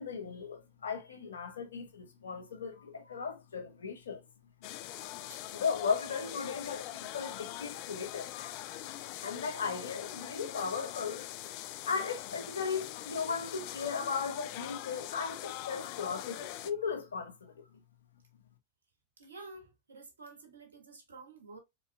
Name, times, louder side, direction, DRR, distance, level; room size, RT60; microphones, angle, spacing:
voice 1, 0.0-4.2 5.5-8.3 9.2-11.3 11.9-17.6, left 5 dB, 75° left, 1.2 m, -36 dB
sound 1, 4.6-16.7, left 14 dB, 50° left, 0.4 m, -43 dB
voice 2, 19.2-21.6, right 3 dB, 85° right, 1.6 m, -50 dB
4.4 x 4.2 x 2.2 m
figure-of-eight pair, 90°, 0 cm